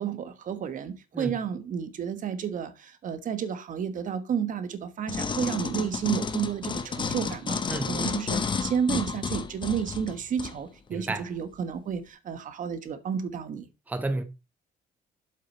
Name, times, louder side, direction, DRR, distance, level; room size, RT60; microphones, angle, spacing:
voice 1, 0.0-13.7, right 8 dB, 50° right, 1.2 m, -31 dB
sound 1, 5.1-10.6 11.1-11.2, left 5 dB, 30° left, 0.9 m, -31 dB
voice 2, 10.9-11.2 13.9-14.2, right 2 dB, 10° right, 0.8 m, -30 dB
7.8 x 6.6 x 4.1 m
cardioid pair, 110°, 17 cm